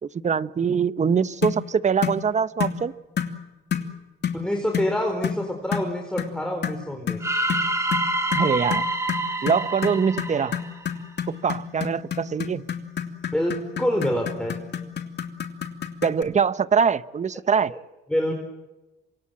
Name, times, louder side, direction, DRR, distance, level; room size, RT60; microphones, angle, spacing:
voice 1, 0.0-2.9 8.3-8.9 9.4-10.6 11.3-12.6 16.0-17.7, right 6 dB, 35° right, 15 dB, 0.9 m, -23 dB
sound 1, 1.4-1.6 2.0-2.2 2.6-2.8 3.2-3.4 3.7-3.9 4.2-4.4 4.7-4.9 5.2-5.4 5.7-5.9 6.2-6.3 6.6-16.2, left 8 dB, 60° left, 2.7 m, -29 dB
voice 2, 4.3-7.2 13.3-14.6 17.7-17.8 18.1-18.3, equal, 5° left, 3 dB, 4.2 m, -26 dB
sound 2, 7.2-11.3, right 1 dB, 15° right, 3.7 m, -27 dB
27.0 x 24.5 x 7.7 m, 1.1 s
cardioid pair, 90°, 20 cm